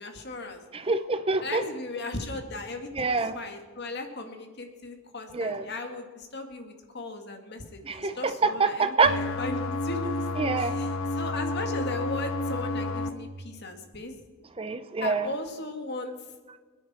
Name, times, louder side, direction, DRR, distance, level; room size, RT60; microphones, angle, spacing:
voice 1, 0.0-0.6 1.4-10.3 10.6-14.1 15.0-16.3, left 2 dB, 50° left, 5 dB, 1.9 m, -37 dB
voice 2, 0.7-1.6 3.0-3.4 5.3-5.7 7.9-9.1 10.4-10.8 14.6-15.3, right 4 dB, 25° right, 10 dB, 0.6 m, -26 dB
sound 1, 9.1-13.1, left 2 dB, 80° left, 1.2 m, -30 dB
26.0 x 10.0 x 4.3 m, 1.4 s
head